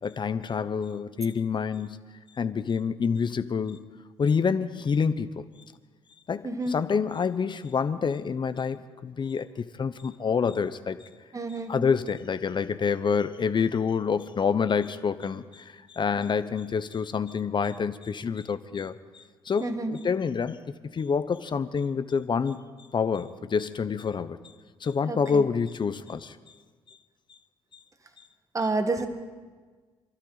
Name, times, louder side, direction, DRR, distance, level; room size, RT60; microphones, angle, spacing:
voice 1, 0.0-2.0 2.4-3.9 4.2-5.5 6.3-11.0 11.7-20.6 20.9-22.6 22.9-24.4 24.8-26.4 26.9-27.0, left 6 dB, 40° left, 12 dB, 0.8 m, -27 dB
voice 2, 6.4-6.8 11.3-11.7 19.6-19.9 25.1-25.4 28.5-29.1, right 2 dB, 25° right, 7 dB, 1.7 m, -29 dB
27.5 x 12.5 x 4.0 m, 1.4 s
supercardioid pair, 60°, 12 cm